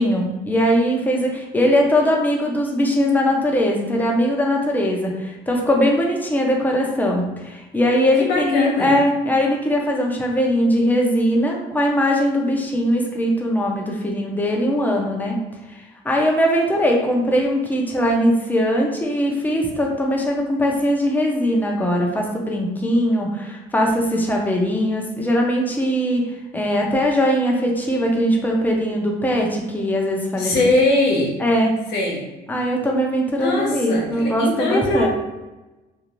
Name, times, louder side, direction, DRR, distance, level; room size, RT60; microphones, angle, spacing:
voice 1, 0.0-15.4 15.7-26.2 26.5-30.5 31.4-31.7 32.5-35.1, equal, 10° left, 0 dB, 0.6 m, -20 dB
voice 2, 8.2-8.9 30.4-31.3 31.9-32.2 33.4-35.1, left 2 dB, 85° left, -2 dB, 0.9 m, -21 dB
2.6 x 2.3 x 3.0 m, 1.1 s
cardioid pair, 110°, 17 cm